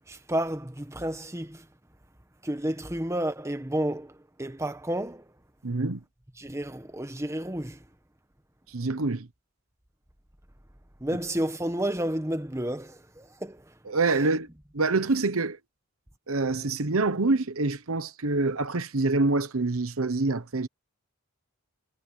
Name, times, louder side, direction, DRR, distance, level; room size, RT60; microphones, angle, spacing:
voice 1, 0.1-1.6 2.4-5.2 6.4-7.8 11.0-13.6, right 1 dB, 15° right, 1.4 m, -31 dB
voice 2, 5.6-6.0 8.7-9.3 13.9-14.5 14.7-15.6 16.3-20.7, right 3 dB, 65° right, 1.1 m, -26 dB
head